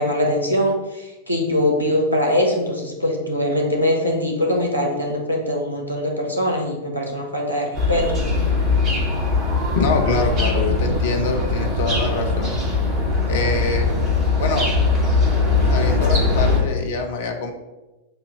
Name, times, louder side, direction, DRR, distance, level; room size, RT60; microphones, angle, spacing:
voice 1, 0.0-8.0, left 1 dB, 80° right, 0 dB, 1.4 m, -22 dB
sound 1, 7.7-16.6, left 3 dB, 35° right, 2.0 m, -20 dB
voice 2, 9.7-12.6 13.3-13.9 14.4-14.7 15.7-17.5, left 4 dB, 60° left, 4 dB, 1.0 m, -24 dB
7.3 x 2.8 x 5.9 m, 1.1 s
figure-of-eight pair, 90°, 0 cm